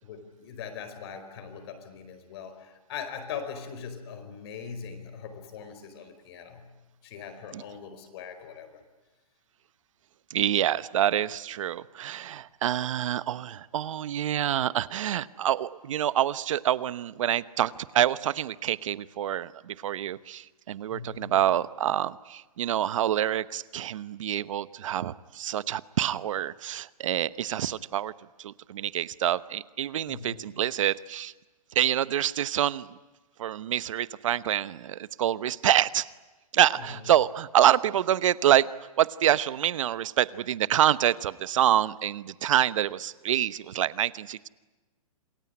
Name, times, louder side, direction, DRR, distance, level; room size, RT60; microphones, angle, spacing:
voice 1, 0.0-6.7 7.0-8.8 20.9-21.4 30.1-30.5 36.8-37.0, left 6 dB, 45° left, 9 dB, 4.8 m, -41 dB
voice 2, 10.3-28.1 28.4-31.3 31.7-33.0 33.4-36.1 36.5-38.7 39.0-44.5, right 11 dB, 60° right, 16 dB, 1.0 m, -26 dB
27.5 x 21.0 x 9.9 m, 1.2 s
hypercardioid pair, 155°, 19 cm